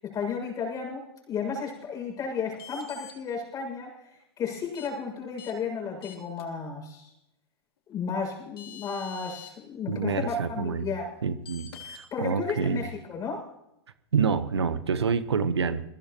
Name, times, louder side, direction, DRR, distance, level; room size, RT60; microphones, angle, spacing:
voice 1, 0.0-7.1 7.9-11.1 12.1-13.4, left 5 dB, 25° left, 2 dB, 6.7 m, -33 dB
sound 1, 2.5-3.1 4.7-4.9 5.4-5.5 6.0-6.4 8.1-8.2 8.6-9.5 11.5-12.0, left 9 dB, 65° left, 3.3 m, -44 dB
voice 2, 9.9-10.9 11.2-12.8 14.1-15.8, right 6 dB, 80° right, 12 dB, 1.2 m, -27 dB
22.0 x 16.5 x 3.1 m, 0.87 s
hypercardioid pair, 110°, 14 cm